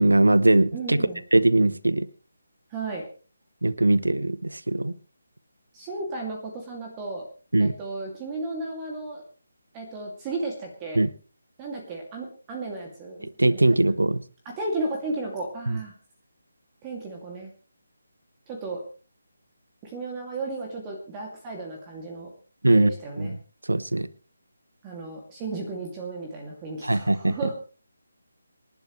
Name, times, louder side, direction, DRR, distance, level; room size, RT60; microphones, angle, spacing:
voice 1, 0.0-2.1 3.6-4.9 7.5-7.7 11.0-11.1 13.2-14.2 15.7-15.8 22.6-23.4 23.7-24.1 26.8-27.4, right 2 dB, 70° right, 17 dB, 0.9 m, -21 dB
voice 2, 0.7-1.2 2.7-3.1 5.7-7.3 7.6-9.2 9.7-11.0 11.6-13.9 14.4-15.9 16.8-17.5 18.5-18.8 19.8-22.3 22.6-23.3 24.8-27.5, right 3 dB, 15° right, 1 dB, 2.6 m, -34 dB
27.5 x 12.0 x 3.3 m, 0.38 s
figure-of-eight pair, 150°, 0 cm